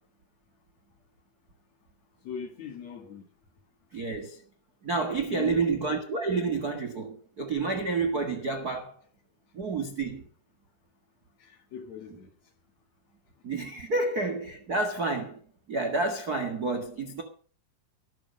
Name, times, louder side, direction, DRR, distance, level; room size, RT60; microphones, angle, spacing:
voice 1, 2.2-3.3 5.3-5.8 11.4-12.5, left 8 dB, 55° left, 2.4 m, -40 dB
voice 2, 3.9-4.4 4.8-9.0 9.5-10.2 13.4-15.4 15.7-17.2, right 3 dB, 70° right, 0.9 m, -29 dB
14.0 x 13.0 x 5.4 m
omnidirectional pair, 4.9 m